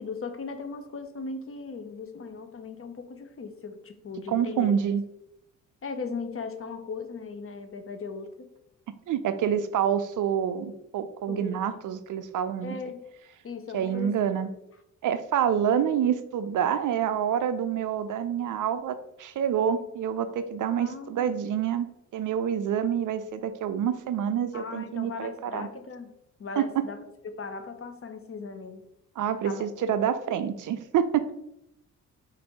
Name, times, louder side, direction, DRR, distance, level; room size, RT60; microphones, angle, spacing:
voice 1, 0.0-4.9 5.8-8.5 11.3-11.6 12.6-13.0 13.4-14.3 15.7-15.9 20.8-21.3 24.5-26.1 26.4-28.8 29.4-29.7, left 4 dB, 35° left, 8 dB, 0.7 m, -38 dB
voice 2, 4.3-5.0 9.1-12.8 13.7-14.5 15.0-21.9 22.1-25.7 26.6-26.7 29.2-31.3, right 9 dB, 50° right, 11 dB, 0.5 m, -27 dB
4.2 x 2.7 x 4.4 m, 0.82 s
hypercardioid pair, 45°, 42 cm